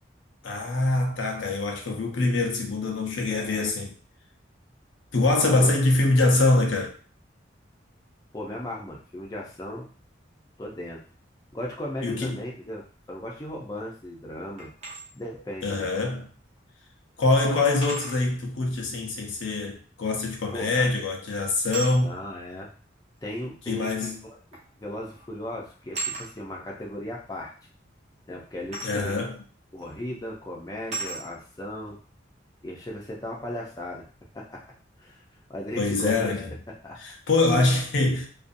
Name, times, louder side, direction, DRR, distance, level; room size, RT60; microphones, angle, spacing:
voice 1, 0.4-3.9 5.1-6.9 12.0-12.4 15.6-16.3 17.2-22.2 23.7-24.2 28.8-29.4 35.8-36.5 37.0-38.3, left 2 dB, 85° left, 0.6 m, -24 dB
voice 2, 3.2-3.7 5.4-5.8 8.3-9.9 10.6-11.0 11.5-14.7 15.1-15.9 20.5-20.9 22.0-22.7 23.2-24.4 24.8-27.5 28.3-29.2 29.7-32.0 32.6-34.0 34.3-34.6 35.0-36.4 36.7-37.0, left 1 dB, 20° left, 0.5 m, -36 dB
sound 1, 14.6-15.0 16.6-16.7 17.8-18.2 20.5-20.8 21.7-22.0 23.2-23.3 24.5-24.7 25.0-25.3 25.9-26.3 28.7-29.0 29.8-29.9 30.9-31.2, right 3 dB, 35° right, 0.7 m, -34 dB
2.5 x 2.3 x 2.5 m
head